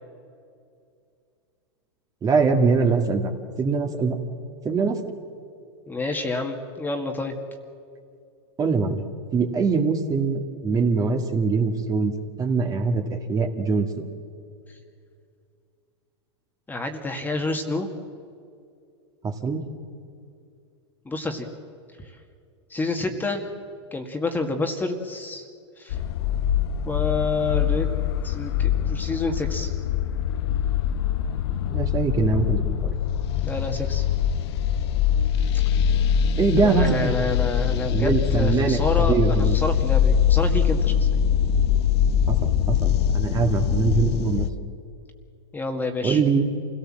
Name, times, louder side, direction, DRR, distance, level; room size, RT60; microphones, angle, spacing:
voice 1, 2.2-3.3 3.6-4.2 4.6-5.0 8.6-9.0 9.3-12.1 12.4-13.0 13.3-14.1 19.2-19.6 31.7-33.0 36.4-37.1 37.9-39.6 42.3-42.4 42.7-44.5 46.0-46.4, right 4 dB, 25° right, 4 dB, 2.0 m, -23 dB
voice 2, 5.9-7.4 16.7-17.9 21.1-21.5 22.0-22.1 22.7-23.5 23.9-25.5 25.8-26.0 26.9-27.9 28.2-29.7 33.4-34.0 36.6-41.3 45.5-46.2, left 3 dB, 10° left, 4 dB, 1.9 m, -28 dB
sound 1, 25.9-44.5, left 9 dB, 65° left, 0.9 m, -23 dB
27.0 x 17.5 x 7.6 m, 2.4 s
hypercardioid pair, 115°, 15 cm